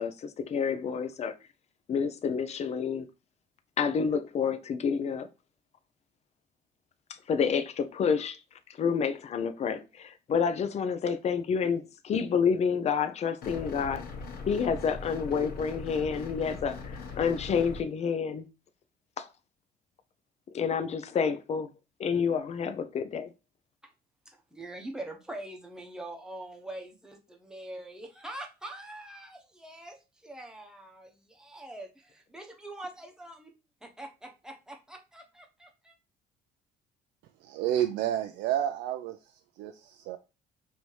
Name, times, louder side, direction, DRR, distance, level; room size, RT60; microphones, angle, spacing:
voice 1, 0.0-1.3 1.9-3.1 3.8-5.3 7.3-8.4 8.8-14.0 14.5-18.5 19.2-19.3 20.5-21.7 22.0-23.3, left 6 dB, 40° left, 0.5 m, -29 dB
sound 1, 13.4-17.8, left 4 dB, 65° left, 1.2 m, -40 dB
voice 2, 24.3-33.5 33.8-36.0, right 1 dB, 5° right, 0.9 m, -44 dB
voice 3, 37.5-39.2 39.6-40.2, right 11 dB, 90° right, 0.4 m, -30 dB
3.2 x 2.8 x 4.5 m
cardioid pair, 110°, 17 cm